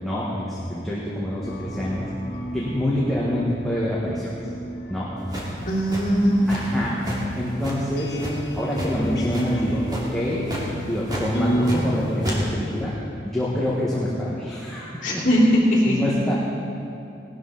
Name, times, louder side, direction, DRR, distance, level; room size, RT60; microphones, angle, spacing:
voice 1, 0.0-2.1 2.5-4.3 4.9-5.4 6.5-7.0 7.4-8.2 8.5-10.5 10.8-13.0 13.2-15.2 15.8-16.3, left 1 dB, ahead, -8 dB, 1.6 m, -26 dB
sound 1, 1.4-11.8, right 1 dB, 65° left, 1.5 m, -33 dB
sound 2, 5.3-6.8 7.0-7.2 7.6-8.9 9.3-9.6 9.9-10.1 10.4-10.6 11.1-11.9 12.2-12.4, equal, 25° right, 2.6 m, -30 dB
voice 2, 5.6-6.6 15.0-16.0, equal, 45° left, -6 dB, 3.0 m, -19 dB
18.5 x 12.5 x 4.1 m, 2.8 s
head